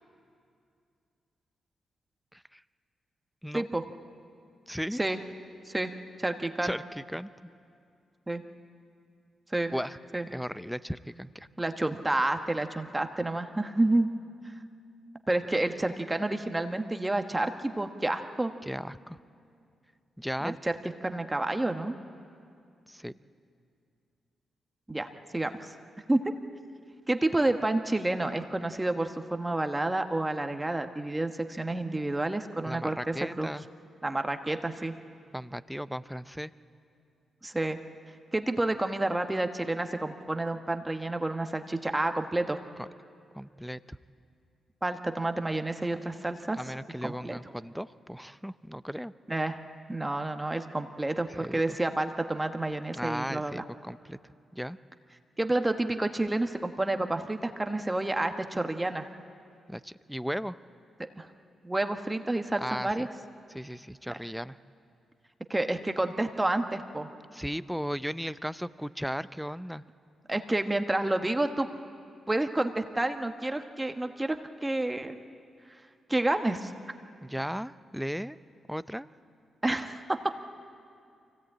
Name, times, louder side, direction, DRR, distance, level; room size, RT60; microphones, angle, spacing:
voice 1, 4.7-5.0 6.6-7.3 9.7-10.0 10.3-11.5 18.6-19.2 20.2-20.6 22.9-23.2 32.6-33.7 35.3-36.5 42.8-42.9 43.3-44.0 46.6-49.1 51.3-51.8 52.9-54.2 54.5-54.8 59.7-60.6 62.6-63.1 63.5-64.6 67.3-69.8 77.2-78.4 78.7-79.1, equal, ahead, 15 dB, 0.6 m, -36 dB
voice 2, 6.2-6.7 8.3-8.4 9.5-9.7 10.1-10.3 11.6-14.1 15.3-18.5 20.4-20.7 21.0-21.9 24.9-25.1 25.3-25.7 26.1-26.2 27.1-33.5 34.0-34.9 37.4-37.8 38.3-42.6 44.8-46.6 47.0-47.4 49.3-49.6 49.9-53.6 55.4-59.1 61.2-61.3 61.6-63.1 65.5-67.1 70.3-71.7 72.3-75.2 76.1-76.7 79.6-80.2, right 2 dB, 20° right, 6 dB, 1.2 m, -29 dB
24.0 x 17.0 x 8.7 m, 2.4 s
supercardioid pair, 55°, 0 cm